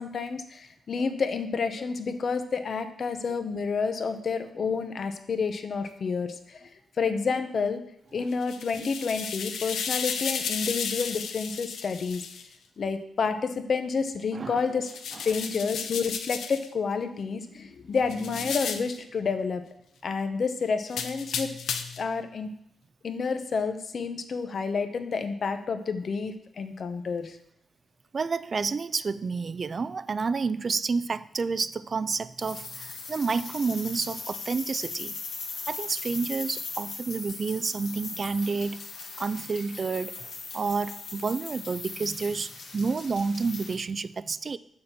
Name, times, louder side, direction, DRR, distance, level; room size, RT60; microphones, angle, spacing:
voice 1, 0.0-6.7 7.0-7.8 8.1-12.3 12.8-14.9 15.2-19.6 20.0-21.5 22.0-22.5 23.0-27.4, left 5 dB, 50° left, 8 dB, 0.8 m, -29 dB
sound 1, 8.3-12.5 14.8-16.7 18.1-19.0 20.9-22.1, left 6 dB, 90° left, 0.7 m, -33 dB
voice 2, 14.3-14.6 28.1-35.1 35.7-38.8 39.2-40.3 40.5-44.6, right 4 dB, 40° right, 15 dB, 0.3 m, -29 dB
sound 2, 32.4-43.8, left 4 dB, 75° left, 1.7 m, -39 dB
6.8 x 5.8 x 6.7 m, 0.74 s
cardioid pair, 120°, 0 cm